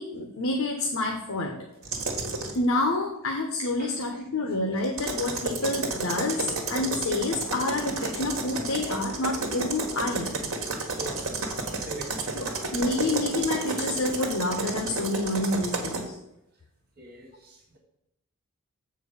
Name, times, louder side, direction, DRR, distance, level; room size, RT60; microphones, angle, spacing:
voice 1, 0.0-1.6 2.5-10.4 12.3-16.2, left 2 dB, 70° left, 2 dB, 1.0 m, -28 dB
sound 1, 1.8-2.6 4.8-16.0, right 3 dB, 65° right, 1.5 m, -31 dB
voice 2, 10.9-11.3 11.8-12.4 17.0-17.8, right 3 dB, 45° right, -1 dB, 1.5 m, -42 dB
7.2 x 4.5 x 6.9 m, 0.87 s
head